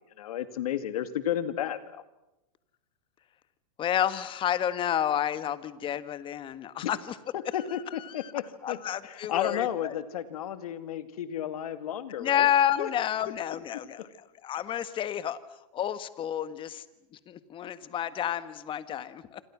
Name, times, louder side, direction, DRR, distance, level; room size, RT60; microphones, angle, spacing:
voice 1, 0.2-2.0 6.8-6.9 7.5-8.8 9.0-12.5 12.8-12.9, left 10 dB, 75° left, 11 dB, 2.5 m, -32 dB
voice 2, 3.8-7.1 8.0-8.3 8.6-9.9 12.2-15.4 15.7-16.8 17.1-19.4, left 10 dB, 25° left, 14 dB, 1.5 m, -30 dB
27.5 x 27.0 x 6.2 m, 0.93 s
hypercardioid pair, 130°, 19 cm